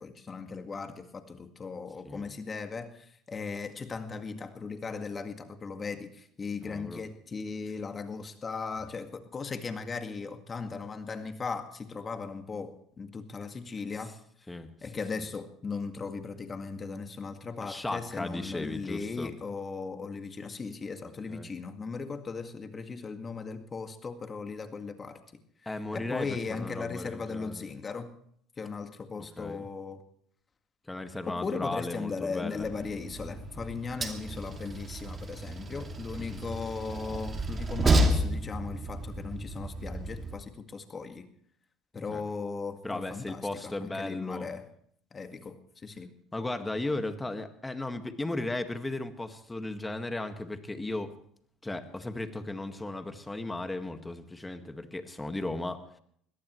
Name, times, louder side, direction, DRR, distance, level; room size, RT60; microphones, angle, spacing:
voice 1, 0.0-14.2 14.8-25.2 25.6-28.2 28.6-30.0 31.3-41.3 41.9-44.6 45.1-46.1, left 4 dB, 30° left, 7 dB, 1.9 m, -38 dB
voice 2, 6.6-7.0 14.5-14.7 17.6-19.3 21.0-21.5 25.7-27.7 29.4-29.7 30.9-32.8 36.2-36.4 42.1-42.2 42.8-44.5 46.3-51.2 51.6-56.0, left 2 dB, 10° left, 7 dB, 1.8 m, -36 dB
Train, 32.6-40.3, right 1 dB, 30° right, 2.5 m, -31 dB
23.5 x 17.5 x 3.2 m, 0.64 s
supercardioid pair, 90°, 0 cm